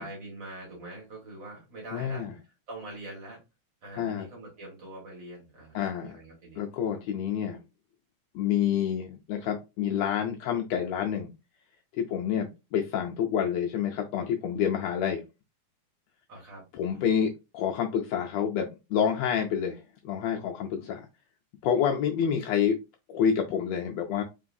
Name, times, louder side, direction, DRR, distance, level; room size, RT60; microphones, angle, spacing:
voice 1, 0.0-2.3 2.7-3.4 3.8-6.6 16.3-17.1, right 2 dB, 50° right, -2 dB, 1.7 m, -44 dB
voice 2, 1.9-2.3 4.0-4.2 5.7-6.2 6.6-7.6 8.3-11.3 11.9-15.2 16.7-21.1 21.6-22.8 23.1-24.2, left 8 dB, 80° left, 2 dB, 1.6 m, -28 dB
3.9 x 3.8 x 2.5 m, 0.26 s
omnidirectional pair, 3.4 m